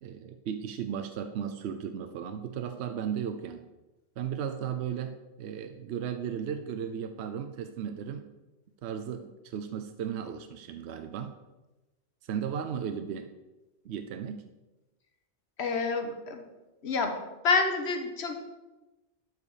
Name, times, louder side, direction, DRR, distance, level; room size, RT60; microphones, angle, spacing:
voice 1, 0.0-3.6 4.2-8.3 8.8-11.3 12.2-13.3 13.8-14.5, right 8 dB, 70° right, 8 dB, 0.9 m, -35 dB
voice 2, 15.6-16.4 16.8-17.2 17.4-18.5, left 4 dB, 70° left, 5 dB, 1.4 m, -28 dB
12.0 x 4.9 x 4.9 m, 1.1 s
omnidirectional pair, 1.1 m